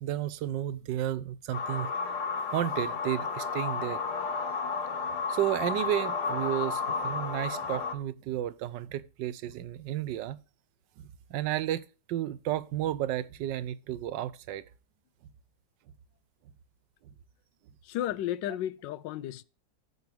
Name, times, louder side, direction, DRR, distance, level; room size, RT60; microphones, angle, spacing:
voice 1, 0.0-1.9 2.5-4.0 5.3-10.4 11.0-14.6, right 12 dB, 85° right, 1.3 m, -32 dB
sound 1, 1.5-7.9, left 5 dB, 65° left, 1.7 m, -32 dB
voice 2, 17.8-19.4, left 12 dB, 85° left, 1.3 m, -33 dB
14.5 x 5.1 x 3.3 m
omnidirectional pair, 1.9 m